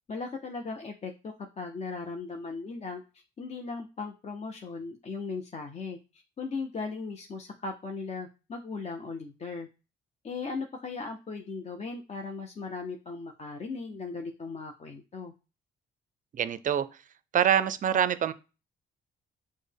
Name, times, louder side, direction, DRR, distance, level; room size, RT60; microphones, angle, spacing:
voice 1, 0.1-3.0 3.4-9.7 10.2-15.3, left 4 dB, 35° left, 3 dB, 0.5 m, -37 dB
voice 2, 16.3-16.9 17.3-18.3, right 9 dB, 40° right, 15 dB, 0.4 m, -25 dB
6.2 x 2.1 x 3.4 m, 0.31 s
cardioid pair, 90°, 20 cm